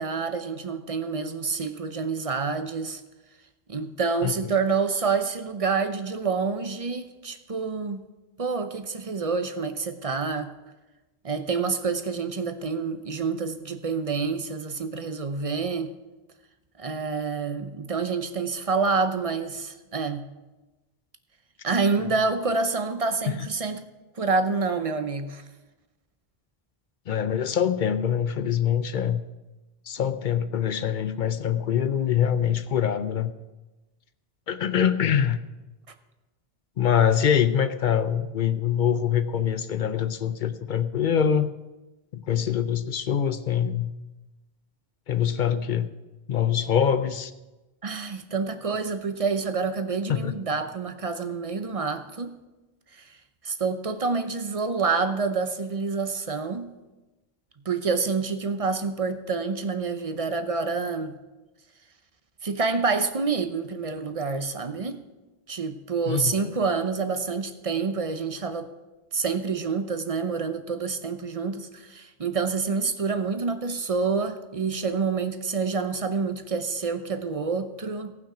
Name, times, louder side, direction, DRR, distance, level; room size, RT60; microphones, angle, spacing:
voice 1, 0.0-3.0 3.7-8.0 8.4-10.5 11.2-15.9 16.8-20.2 21.6-23.8 24.2-25.4 47.8-52.4 52.9-53.1 53.4-56.7 57.6-61.2 62.4-65.0 65.5-68.7 69.1-78.1, right 4 dB, 35° right, 9 dB, 0.8 m, -27 dB
voice 2, 27.1-29.2 29.9-33.3 34.5-35.4 36.8-41.5 42.1-43.9 45.1-45.9 46.3-47.3 50.1-50.4 66.1-66.5, left 8 dB, 55° left, 12 dB, 0.7 m, -24 dB
18.0 x 6.0 x 5.0 m, 1.1 s
omnidirectional pair, 1.1 m